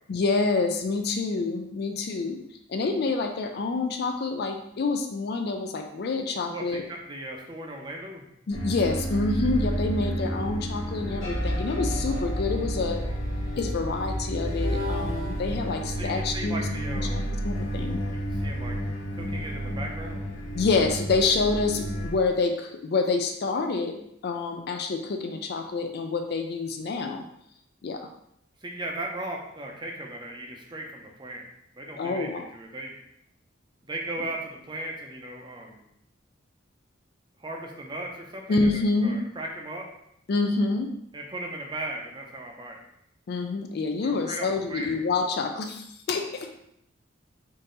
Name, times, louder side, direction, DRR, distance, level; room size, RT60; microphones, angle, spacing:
voice 1, 0.1-2.4 2.7-6.8 8.5-13.1 13.6-16.7 16.9-18.0 20.5-24.0 24.2-27.3 27.8-28.1 32.0-32.5 38.5-39.2 40.3-40.9 43.3-46.5, left 3 dB, 50° left, 5 dB, 0.4 m, -27 dB
voice 2, 6.5-8.3 16.0-17.2 18.3-18.8 19.1-20.2 28.6-31.4 31.7-32.9 33.8-35.8 37.4-39.9 41.1-42.8 44.0-44.9, right 1 dB, 25° right, 0 dB, 0.6 m, -37 dB
sound 1, 8.5-22.1, equal, 70° left, 0.9 m, -30 dB
3.8 x 2.7 x 3.8 m, 0.75 s
head